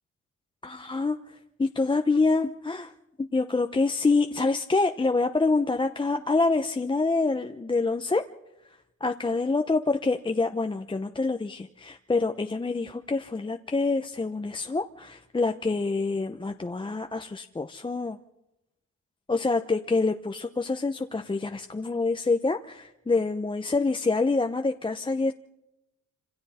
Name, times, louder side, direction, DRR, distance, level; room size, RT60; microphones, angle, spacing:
voice 1, 0.6-2.9 3.2-8.3 9.0-18.2 19.3-25.3, left 3 dB, 15° left, 5 dB, 0.8 m, -26 dB
27.0 x 26.0 x 4.3 m, 0.91 s
cardioid pair, 90°, 30 cm